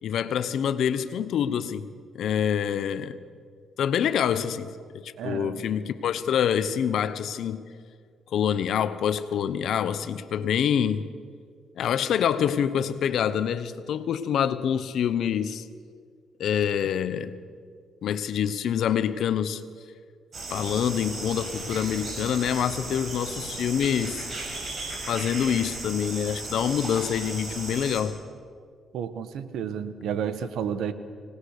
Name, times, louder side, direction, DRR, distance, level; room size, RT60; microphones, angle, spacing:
voice 1, 0.0-3.2 3.8-7.7 8.3-11.1 11.8-15.7 16.4-17.3 18.0-19.7 20.5-24.3 25.1-28.2, left 8 dB, 70° left, 1.1 m, -26 dB
voice 2, 5.2-5.6 28.9-30.9, right 8 dB, 75° right, 1.4 m, -31 dB
sound 1, 20.3-28.0, right 2 dB, 40° right, 6.6 m, -36 dB
26.0 x 19.0 x 6.7 m
cardioid pair, 90°, 0 cm